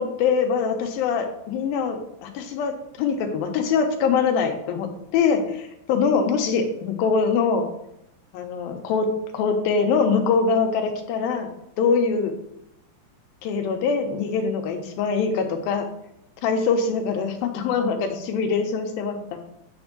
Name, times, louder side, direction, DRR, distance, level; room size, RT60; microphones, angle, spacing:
voice 1, 0.0-5.6 5.9-7.7 8.3-9.1 9.3-11.5 11.8-12.3 13.4-15.9 16.4-19.4, left 5 dB, 90° left, 5 dB, 2.8 m, -23 dB
9.4 x 3.5 x 6.6 m, 0.80 s
omnidirectional pair, 4.1 m